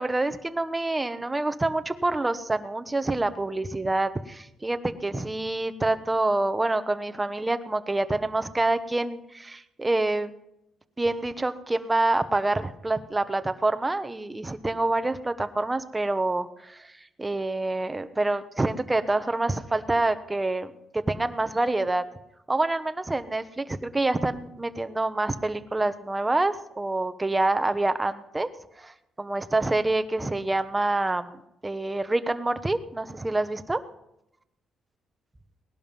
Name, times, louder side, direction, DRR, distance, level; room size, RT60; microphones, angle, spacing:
voice 1, 0.0-10.3 11.0-16.9 17.2-22.0 22.5-28.5 28.8-33.8, right 2 dB, 15° right, 10 dB, 1.0 m, -27 dB
19.0 x 11.5 x 5.3 m, 0.86 s
cardioid pair, 90°, 0 cm